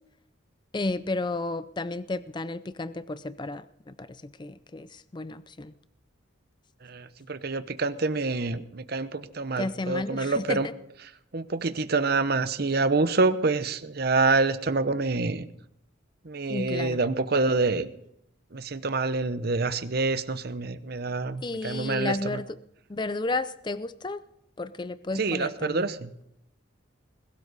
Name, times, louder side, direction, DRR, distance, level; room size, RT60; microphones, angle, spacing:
voice 1, 0.7-5.7 9.6-10.7 16.5-17.0 21.4-22.6 22.9-24.2 24.6-25.9, left 2 dB, 20° left, 14 dB, 0.4 m, -32 dB
voice 2, 6.8-10.7 11.3-15.5 16.2-17.9 18.5-22.4 25.2-26.1, right 3 dB, 50° right, 12 dB, 0.8 m, -27 dB
21.0 x 12.5 x 4.1 m, 0.79 s
head